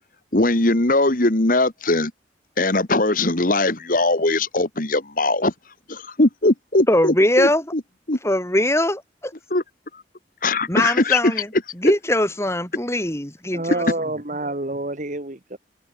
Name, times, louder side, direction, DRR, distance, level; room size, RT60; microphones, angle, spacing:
voice 1, 0.3-2.1 2.6-5.5 5.9-7.8 8.1-8.2 9.5-9.6 10.4-11.9, left 2 dB, 50° left, 1.9 m, -20 dB
voice 2, 6.9-7.6 8.2-9.3 10.7-11.5 11.8-13.8, left 1 dB, 15° left, 4.8 m, -21 dB
voice 3, 13.5-15.6, right 2 dB, 45° right, 2.2 m, -28 dB
head